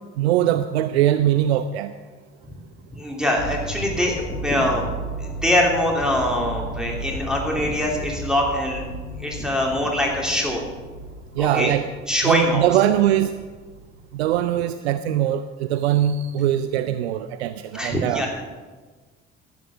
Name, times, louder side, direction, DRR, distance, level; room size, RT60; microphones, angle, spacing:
voice 1, 0.2-1.9 11.4-11.9 12.2-13.4 14.1-18.3, right 11 dB, 70° right, 12 dB, 0.5 m, -21 dB
voice 2, 2.9-4.9 5.2-8.8 9.2-10.6 11.4-11.7 12.1-12.7 17.7-18.4, left 1 dB, ahead, -1 dB, 2.9 m, -23 dB
sound 1, 3.4-14.5, right 1 dB, 80° left, 1.0 m, -35 dB
14.0 x 8.4 x 5.9 m, 1.4 s
figure-of-eight pair, 50°, 33 cm